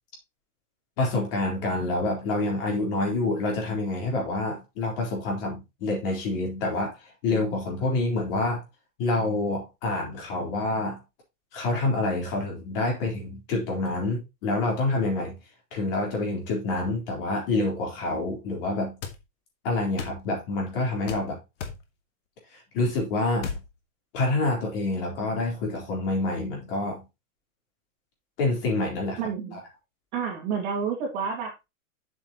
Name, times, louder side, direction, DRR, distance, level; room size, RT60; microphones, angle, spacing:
voice 1, 1.0-8.6 9.0-11.0 11.5-15.4 15.7-19.0 19.6-21.4 22.5-23.6 24.1-27.0 28.4-29.6, left 2 dB, 40° left, 3.8 m, -27 dB
sound 1, 19.0-19.2 20.0-20.2 21.1-21.3 21.6-21.8 23.4-23.7, left 6 dB, 55° left, 1.7 m, -34 dB
voice 2, 29.2-29.6 30.1-31.6, right 6 dB, 35° right, 2.4 m, -30 dB
7.9 x 6.7 x 3.0 m
supercardioid pair, 170°, 42 cm